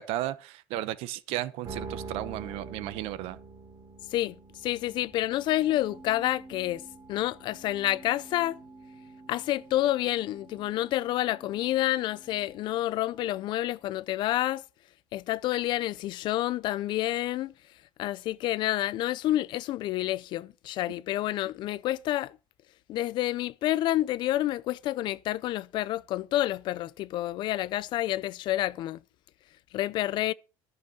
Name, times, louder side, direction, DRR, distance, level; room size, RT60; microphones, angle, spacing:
voice 1, 0.0-3.4, right 14 dB, 60° right, 0.8 m, -34 dB
sound 1, 1.6-14.0, right 4 dB, 30° right, 2.9 m, -47 dB
voice 2, 4.1-6.8 7.1-8.6 9.3-14.6 15.1-17.5 18.0-22.4 22.9-29.0 29.7-30.3, left 14 dB, 45° left, 0.5 m, -29 dB
13.5 x 6.7 x 7.0 m
cardioid pair, 170°, 11 cm